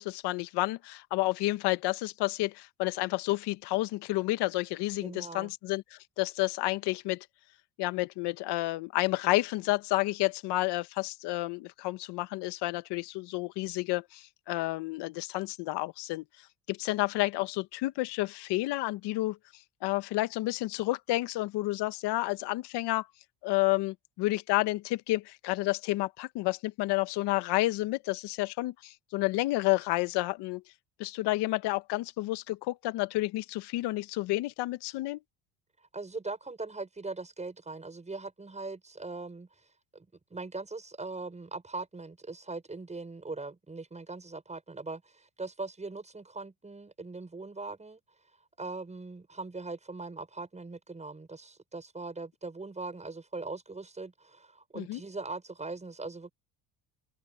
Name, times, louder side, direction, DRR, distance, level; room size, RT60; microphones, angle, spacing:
voice 1, 0.0-7.3 7.8-16.2 16.7-19.4 19.8-23.1 23.4-30.6 31.0-35.2 54.7-55.0, left 19 dB, 75° left, 1.2 m, -30 dB
voice 2, 5.0-5.5 35.9-39.5 39.9-48.0 48.6-56.3, right 3 dB, 15° right, 6.3 m, -40 dB
cardioid pair, 115°, 41 cm